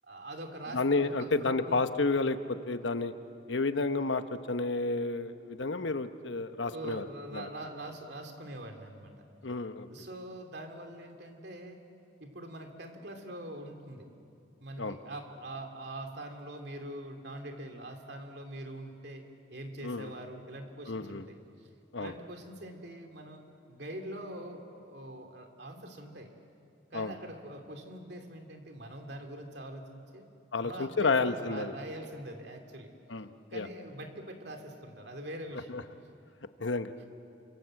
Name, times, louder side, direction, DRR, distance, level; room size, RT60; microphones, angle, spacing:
voice 1, 0.0-1.8 6.6-9.1 9.9-11.8 12.2-14.1 14.6-19.2 19.5-21.7 22.0-23.4 23.7-26.3 26.9-30.3 30.6-32.9 33.5-35.8 37.0-37.1, right 1 dB, 55° right, 5 dB, 2.9 m, -43 dB
voice 2, 0.7-2.4 2.7-3.1 3.5-7.0 7.3-7.5 9.4-9.9 14.8-15.0 19.8-20.1 20.9-21.2 21.9-22.1 26.9-27.1 30.5-31.7 33.1-33.7 35.7-35.8 36.6-36.9, left 3 dB, 75° left, 9 dB, 1.1 m, -30 dB
28.5 x 26.5 x 7.7 m, 2.6 s
head